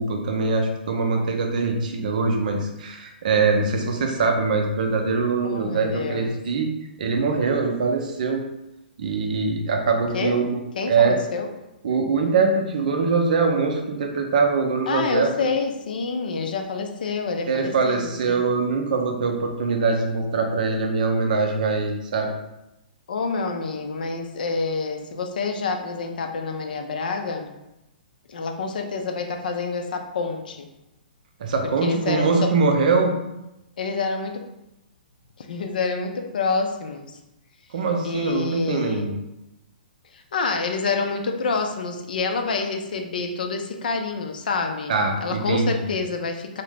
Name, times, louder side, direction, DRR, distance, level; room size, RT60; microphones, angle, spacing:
voice 1, 0.0-6.7 7.0-8.4 9.0-10.6 10.9-11.2 11.8-15.3 17.5-22.3 31.4-33.1 37.7-39.2 44.9-45.9, right 4 dB, 55° right, 3 dB, 0.5 m, -23 dB
voice 2, 5.4-6.4 10.1-10.4 10.8-11.5 14.9-18.5 23.1-27.5 28.3-30.7 31.8-32.5 33.8-34.4 35.4-37.1 38.0-39.0 40.1-44.9 45.2-46.6, left 4 dB, 60° left, 4 dB, 0.4 m, -27 dB
2.6 x 2.0 x 3.3 m, 0.91 s
figure-of-eight pair, 120°, 5 cm